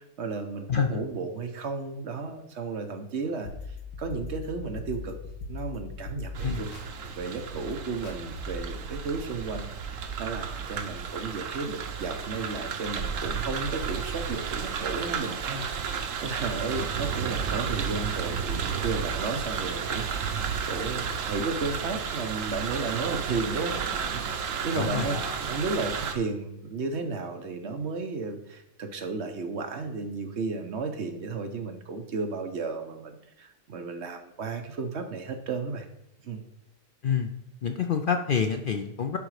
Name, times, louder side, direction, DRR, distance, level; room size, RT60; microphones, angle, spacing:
voice 1, 0.0-3.5 4.0-5.2 5.5-6.7 7.1-15.7 16.2-23.8 24.1-35.9 36.2-36.4, right 4 dB, 60° right, 6 dB, 1.1 m, -33 dB
voice 2, 0.7-1.0 6.4-6.6 24.7-25.4 37.0-37.3 37.6-39.2, left 6 dB, 55° left, 6 dB, 0.6 m, -27 dB
sound 1, 3.4-8.7, left 4 dB, 75° left, 1.5 m, -40 dB
sound 2, 6.3-26.1, right 6 dB, 85° right, 1.1 m, -32 dB
11.0 x 3.9 x 4.8 m, 0.83 s
omnidirectional pair, 1.3 m